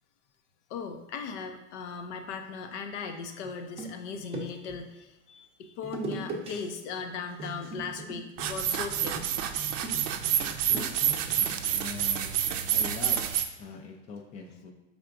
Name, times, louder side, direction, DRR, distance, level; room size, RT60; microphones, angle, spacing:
voice 1, 0.7-9.5, left 5 dB, 60° left, 6 dB, 0.6 m, -38 dB
sound 1, 3.4-4.8 5.8-6.5 6.8-7.1 7.4-11.4, right 3 dB, 15° right, 0.6 m, -40 dB
sound 2, 8.4-13.4, right 9 dB, 70° right, 0.5 m, -28 dB
voice 2, 10.7-12.4 12.7-13.2 13.6-14.7, left 4 dB, 20° left, 2 dB, 0.3 m, -42 dB
4.4 x 3.5 x 2.5 m, 0.95 s
hypercardioid pair, 105°, 40 cm